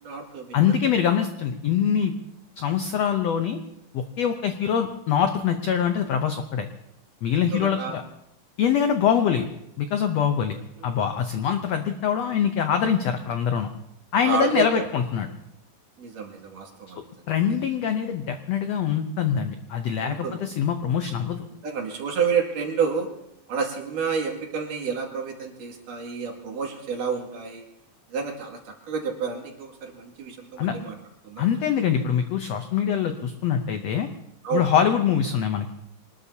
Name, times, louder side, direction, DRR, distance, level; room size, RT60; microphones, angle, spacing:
voice 1, 0.0-0.6 7.4-8.0 14.3-14.8 16.0-17.0 20.0-20.4 21.6-23.1 23.5-27.6 28.1-31.0 31.2-31.5 34.4-34.6, right 6 dB, 65° right, 1 dB, 3.7 m, -29 dB
voice 2, 0.5-2.1 2.6-3.6 3.9-6.7 7.2-8.0 8.6-9.5 9.8-10.6 10.8-13.7 14.1-15.3 17.3-21.5 30.6-30.7 31.4-34.1 34.5-35.7, left 8 dB, 80° left, 6 dB, 1.4 m, -24 dB
25.5 x 20.0 x 2.8 m, 0.82 s
omnidirectional pair, 4.1 m